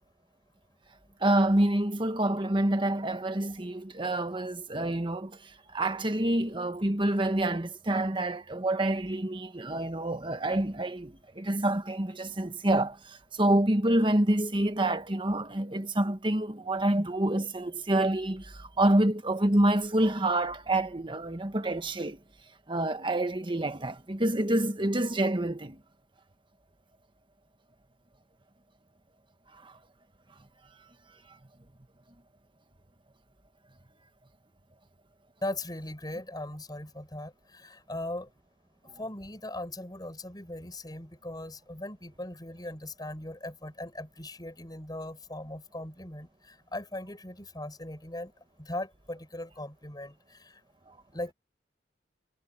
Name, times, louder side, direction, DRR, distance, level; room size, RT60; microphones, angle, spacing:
voice 1, 1.2-22.2 22.7-25.8 29.6-29.8, right 1 dB, 30° right, 1.5 m, -27 dB
voice 2, 35.4-38.3 38.9-48.3 48.6-50.6 51.1-51.3, left 1 dB, 25° left, 6.2 m, -39 dB
head